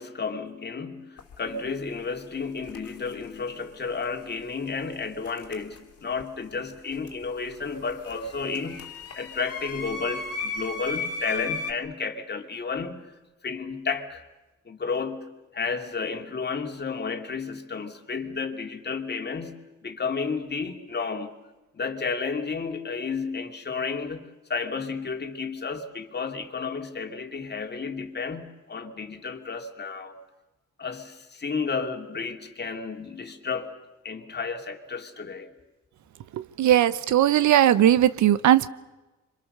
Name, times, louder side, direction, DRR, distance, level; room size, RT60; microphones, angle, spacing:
voice 1, 0.0-8.9 9.1-13.1 13.4-14.2 14.7-21.3 21.7-30.2 30.8-33.7 34.0-35.5, left 5 dB, 35° left, 2.8 m, -32 dB
sound 1, 1.2-1.3 2.6-3.1 5.2-6.2 6.5-11.7, left 3 dB, 50° left, 2.8 m, -35 dB
voice 2, 36.3-38.7, right 11 dB, 70° right, 0.9 m, -19 dB
27.0 x 25.0 x 6.7 m
cardioid pair, 90°, 30 cm